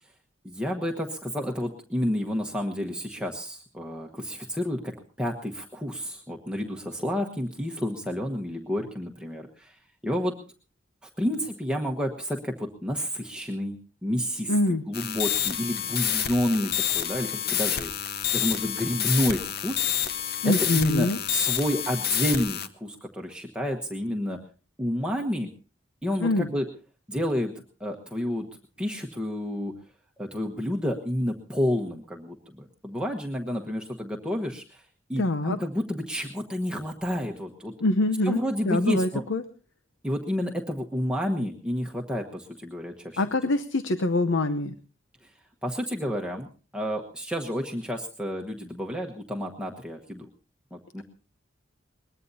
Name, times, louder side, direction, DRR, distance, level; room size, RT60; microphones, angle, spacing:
voice 1, 0.4-10.4 11.0-17.9 18.3-19.9 20.4-24.4 24.8-25.5 26.0-26.6 27.1-27.5 27.8-28.5 28.8-29.8 30.2-37.7 38.2-39.2 40.0-43.2 45.2-45.3 45.6-46.5 46.7-50.3 50.7-51.0, equal, 5° right, 1 dB, 1.2 m, -30 dB
voice 2, 14.5-14.8 20.4-21.2 26.2-26.5 35.2-35.6 37.8-38.4 38.6-39.4 43.2-44.7, left 2 dB, 85° left, 9 dB, 0.8 m, -24 dB
sound 1, 14.9-22.7, left 9 dB, 55° left, 1.0 m, -28 dB
22.0 x 20.5 x 2.8 m, 0.36 s
head